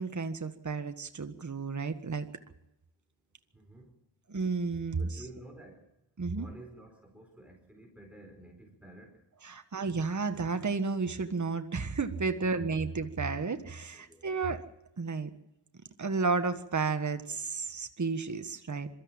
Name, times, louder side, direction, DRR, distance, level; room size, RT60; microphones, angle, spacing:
voice 1, 0.0-2.3 4.3-5.1 6.2-6.5 9.4-14.6 15.0-15.3 16.0-18.9, right 4 dB, 40° right, 7 dB, 1.6 m, -32 dB
voice 2, 3.5-4.0 5.0-5.9 6.3-9.2 12.3-12.6 13.9-14.3, right 1 dB, 5° right, 2 dB, 4.8 m, -51 dB
22.5 x 13.5 x 8.9 m, 0.90 s
cardioid pair, 45°, 45 cm